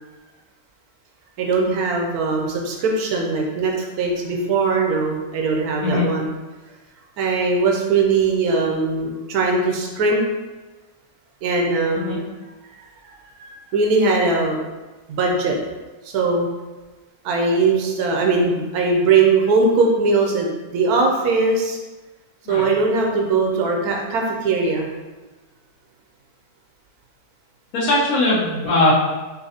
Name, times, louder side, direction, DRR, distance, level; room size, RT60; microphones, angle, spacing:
voice 1, 1.4-6.3 7.2-10.2 11.4-12.2 13.0-13.1 13.4-14.6 15.1-15.6 16.0-16.5 17.2-21.8 22.5-24.9, right 3 dB, 85° right, 1 dB, 1.2 m, -20 dB
voice 2, 27.7-28.9, left 2 dB, 70° left, -6 dB, 1.5 m, -20 dB
5.4 x 2.6 x 2.8 m, 1.2 s
omnidirectional pair, 1.6 m